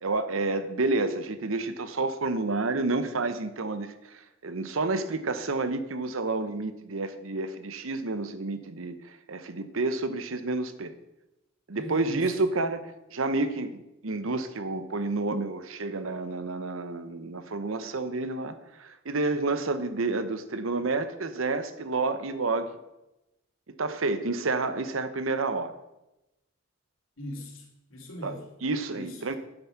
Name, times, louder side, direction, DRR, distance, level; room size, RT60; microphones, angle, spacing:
voice 1, 0.0-10.9 11.7-12.8 13.1-22.8 23.8-25.7 28.2-28.3 28.6-29.3, right 3 dB, 85° right, 11 dB, 0.9 m, -30 dB
voice 2, 11.7-12.3 27.2-28.5 28.9-29.4, left 1 dB, 85° left, 1 dB, 2.5 m, -40 dB
9.0 x 8.2 x 5.9 m, 0.95 s
head